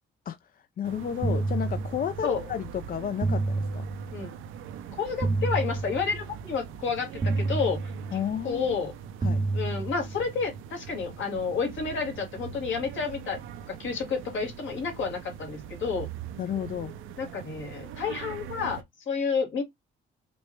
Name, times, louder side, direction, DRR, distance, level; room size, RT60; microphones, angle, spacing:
voice 1, 0.3-3.8 8.1-8.8 9.2-9.4 16.4-16.9, left 9 dB, 45° left, 0.4 m, -32 dB
sound 1, 0.8-18.8, right 9 dB, 90° right, 0.6 m, -42 dB
sound 2, 1.2-2.4 3.2-4.4 5.2-6.4 7.2-8.4 9.2-10.4, right 3 dB, 20° right, 0.3 m, -29 dB
voice 2, 5.0-7.8 8.4-8.9 9.5-13.4 13.7-16.1 17.2-19.6, left 5 dB, 75° left, 2.0 m, -30 dB
5.2 x 2.2 x 3.2 m
cardioid pair, 90°, 20 cm